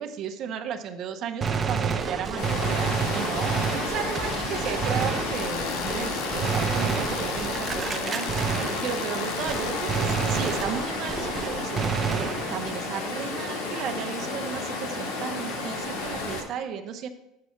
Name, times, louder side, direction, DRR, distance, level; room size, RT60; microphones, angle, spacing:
voice 1, 0.0-17.1, right 7 dB, 45° right, 7 dB, 0.8 m, -35 dB
Gunshot gunfire, 1.4-9.2 9.5-12.8, right 5 dB, 20° right, 0.6 m, -29 dB
Water, 2.4-16.4, left 3 dB, 85° left, 1.8 m, -32 dB
Tools, 5.3-10.6, left 10 dB, 60° left, 0.5 m, -39 dB
7.7 x 4.2 x 5.7 m, 0.87 s
cardioid pair, 150°, 0 cm